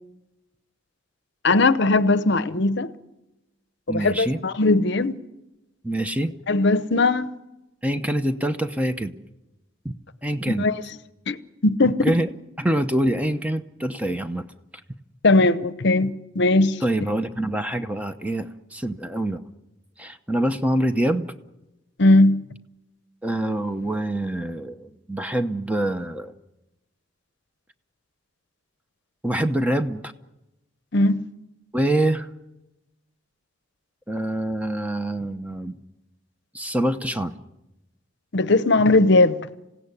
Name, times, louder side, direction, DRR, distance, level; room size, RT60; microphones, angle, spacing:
voice 1, 1.4-2.9 3.9-5.2 6.5-7.3 10.5-10.8 11.3-11.4 11.6-12.1 15.2-16.8 22.0-22.4 30.9-31.2 38.3-39.4, left 2 dB, 55° left, 0.8 m, -19 dB
voice 2, 3.9-4.4 5.8-6.3 7.8-9.2 9.8-9.9 10.2-10.7 12.0-12.3 12.6-14.4 16.8-19.4 20.0-21.3 23.2-26.3 29.2-30.1 31.7-32.3 34.1-35.7 36.5-37.3, right 1 dB, 5° right, 0.8 m, -25 dB
27.0 x 16.5 x 9.8 m
head